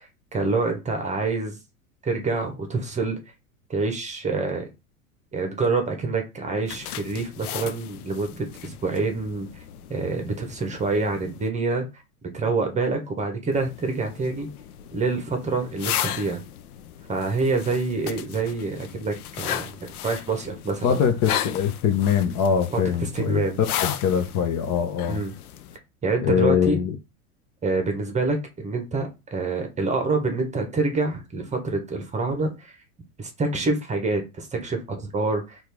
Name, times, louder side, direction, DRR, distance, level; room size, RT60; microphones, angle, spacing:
voice 1, 0.0-1.6 2.0-3.2 3.7-4.7 5.3-9.5 9.9-11.8 12.3-14.5 14.9-16.4 17.1-21.0 23.1-23.6 25.1-25.3 26.0-26.8 27.6-32.8 33.2-35.6, right 3 dB, 15° right, 0.9 m, -26 dB
sound 1, 6.7-11.5 13.5-25.8, left 11 dB, 80° left, 0.6 m, -35 dB
voice 2, 20.8-25.2 26.2-27.0, left 8 dB, 40° left, 0.8 m, -23 dB
4.2 x 2.5 x 3.4 m
hypercardioid pair, 110°, 44 cm